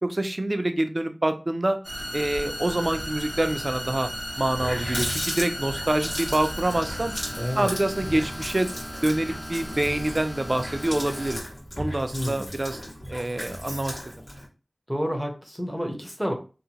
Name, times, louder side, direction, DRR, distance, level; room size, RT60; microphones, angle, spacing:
voice 1, 0.0-1.8 2.1-4.1 4.4-7.1 7.6-8.7 9.0-11.4 11.8-12.8 13.1-14.1, right 1 dB, 40° right, 7 dB, 0.4 m, -26 dB
sound 1, 1.8-11.4, equal, 25° left, 0.8 m, -35 dB
Water tap faucet, 4.0-4.1 4.4-14.5, equal, 50° left, 1.4 m, -36 dB
voice 2, 7.3-7.7 12.1-12.5 14.9-16.3, equal, ahead, 2 dB, 0.7 m, -29 dB
2.7 x 2.1 x 2.8 m, 0.33 s
wide cardioid pair, 65°, 0 cm